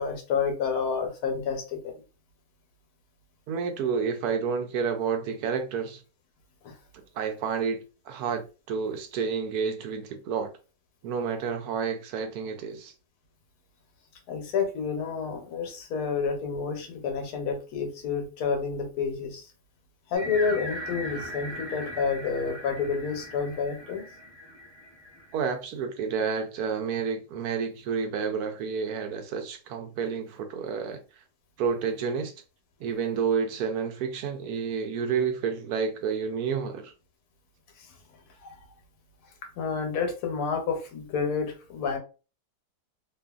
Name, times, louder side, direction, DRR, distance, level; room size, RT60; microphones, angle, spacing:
voice 1, 0.0-1.9 14.3-19.4 20.1-24.0 39.6-42.0, left 5 dB, 75° left, 1.3 m, -29 dB
voice 2, 3.5-6.0 7.1-10.5 11.0-12.9 25.3-31.0 31.6-32.3 32.8-36.9, right 6 dB, 75° right, 1.1 m, -30 dB
sound 1, 20.1-25.3, equal, 25° right, 0.5 m, -39 dB
2.8 x 2.5 x 2.3 m
omnidirectional pair, 1.7 m